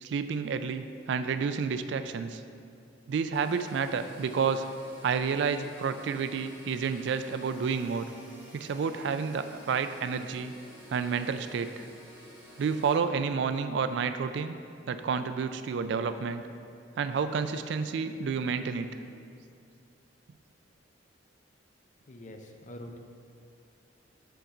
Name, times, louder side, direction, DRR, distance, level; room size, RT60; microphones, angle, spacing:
voice 1, 0.0-2.4 3.1-4.7 5.0-8.1 8.5-10.5 10.9-11.8 12.6-14.5 14.9-16.4 17.0-18.9, right 5 dB, 65° right, 10 dB, 0.3 m, -30 dB
sound 1, 3.3-12.9, right 1 dB, 10° right, 1.2 m, -51 dB
voice 2, 22.1-23.0, left 1 dB, 40° left, 4 dB, 0.6 m, -45 dB
7.0 x 3.8 x 6.0 m, 2.3 s
head